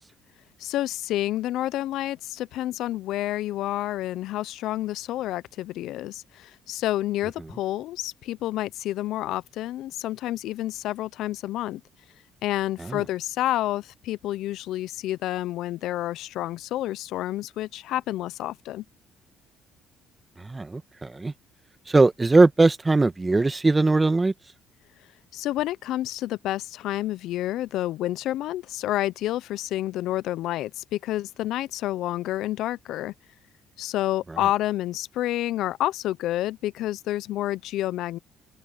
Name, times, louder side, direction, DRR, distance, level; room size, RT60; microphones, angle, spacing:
voice 1, 0.6-11.8 12.4-18.8 25.3-33.1 33.8-38.2, left 14 dB, 70° left, 0.8 m, -29 dB
voice 2, 20.4-21.3 21.9-24.3 34.3-34.4, right 3 dB, 25° right, 1.8 m, -20 dB
open air
hypercardioid pair, 55°, 0 cm